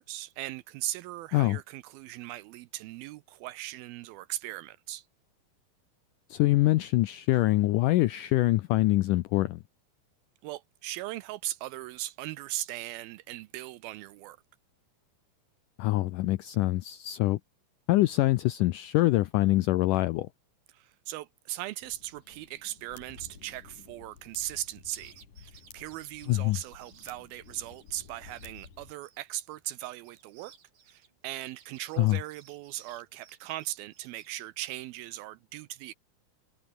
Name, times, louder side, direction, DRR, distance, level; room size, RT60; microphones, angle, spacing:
voice 1, 0.0-5.1 10.4-14.4 20.7-30.5 30.9-35.9, right 15 dB, 80° right, 2.4 m, -39 dB
voice 2, 6.3-9.6 15.8-17.4 17.9-20.3 26.3-26.6 32.0-32.2, left 17 dB, 85° left, 1.8 m, -24 dB
sound 1, 21.8-28.9, left 6 dB, 55° left, 5.5 m, -53 dB
sound 2, 24.3-27.9 28.3-28.7 29.0-34.4, right 8 dB, 60° right, 4.4 m, -58 dB
omnidirectional pair, 4.5 m